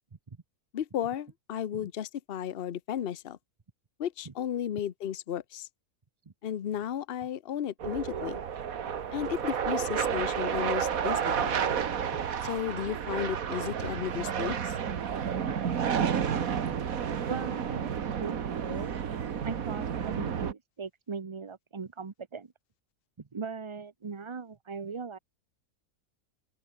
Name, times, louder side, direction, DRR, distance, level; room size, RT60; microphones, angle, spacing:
voice 1, 0.7-3.4 4.0-5.7 6.4-8.4 9.1-11.6 12.4-14.8, left 10 dB, 45° left, 0.8 m, -34 dB
sound 1, 7.8-20.5, right 7 dB, 65° right, 1.7 m, -31 dB
voice 2, 17.1-18.9 19.4-22.5 23.3-25.2, right 5 dB, 25° right, 0.7 m, -39 dB
open air
omnidirectional pair, 1.6 m